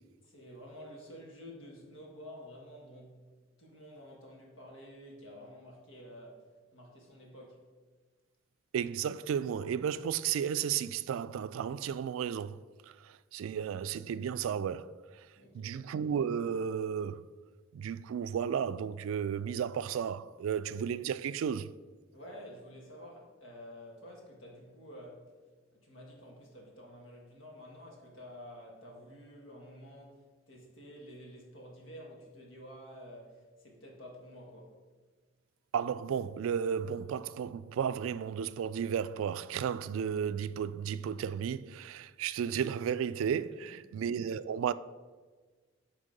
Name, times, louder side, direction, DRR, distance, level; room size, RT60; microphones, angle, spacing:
voice 1, 0.2-3.2 3.6-6.4 6.7-7.6 15.4-15.8 22.1-25.3 25.7-34.7 43.7-43.8, equal, 75° left, 1.8 m, -50 dB
voice 2, 8.7-14.9 15.5-17.2 17.7-21.7 35.7-44.7, right 8 dB, 85° right, 0.3 m, -33 dB
9.1 x 3.6 x 5.2 m
head